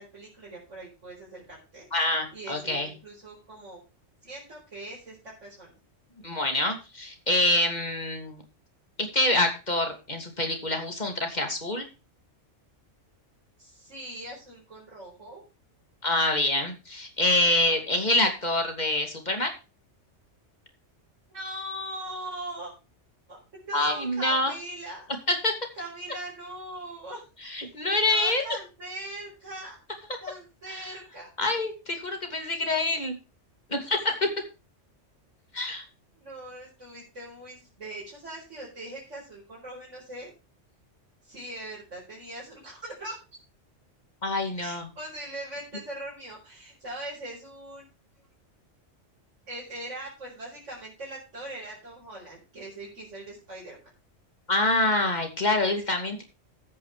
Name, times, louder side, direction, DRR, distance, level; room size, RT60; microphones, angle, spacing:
voice 1, 0.0-1.9 2.3-3.8 4.2-5.2 5.4-5.7 13.6-15.4 21.3-22.7 23.3-25.1 25.7-27.2 27.9-29.8 30.2-31.3 36.1-40.3 41.2-43.2 44.6-47.9 49.5-53.8, right 1 dB, 75° right, -5 dB, 5.2 m, -40 dB
voice 2, 1.9-2.9 6.2-8.4 9.0-11.8 16.0-19.5 23.7-24.5 25.3-25.5 27.4-28.4 30.7-30.8 31.4-33.2 33.7-34.3 35.5-35.8 44.2-44.9 54.5-56.2, left 2 dB, 35° left, 4 dB, 2.9 m, -26 dB
13.0 x 9.5 x 3.4 m, 0.30 s
omnidirectional pair, 1.3 m